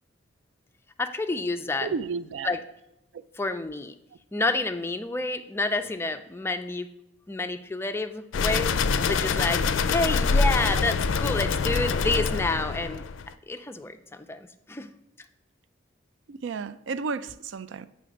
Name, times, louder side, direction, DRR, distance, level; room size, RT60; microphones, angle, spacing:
voice 1, 1.0-1.9 2.4-2.6 3.4-3.9 4.3-6.9 7.3-9.6 9.9-13.0 13.5-14.9, left 2 dB, 15° left, 0.4 m, -29 dB
voice 2, 1.8-2.6 16.3-17.9, right 5 dB, 65° right, 0.4 m, -32 dB
sound 1, 8.3-13.3, left 4 dB, 80° left, 0.4 m, -25 dB
8.8 x 3.3 x 6.4 m
head